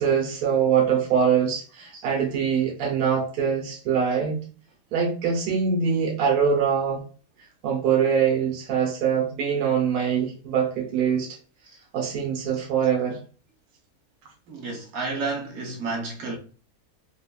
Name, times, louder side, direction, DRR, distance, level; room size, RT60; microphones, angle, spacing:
voice 1, 0.0-4.4 4.9-7.0 7.6-11.3 11.9-13.2, right 7 dB, 90° right, 1.2 m, -23 dB
voice 2, 14.5-16.4, right 3 dB, 75° right, 1.4 m, -31 dB
5.1 x 2.3 x 2.2 m
omnidirectional pair, 1.6 m